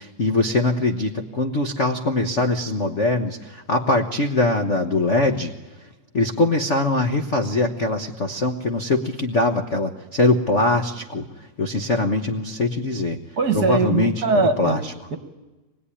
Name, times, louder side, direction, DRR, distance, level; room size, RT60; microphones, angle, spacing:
voice 1, 0.0-5.5 6.1-11.2 11.6-13.2 13.5-14.1 14.6-14.9, left 2 dB, 70° left, 4 dB, 0.6 m, -22 dB
voice 2, 13.4-14.8, right 4 dB, 45° right, 8 dB, 1.5 m, -21 dB
25.5 x 20.5 x 10.0 m, 1.1 s
omnidirectional pair, 3.3 m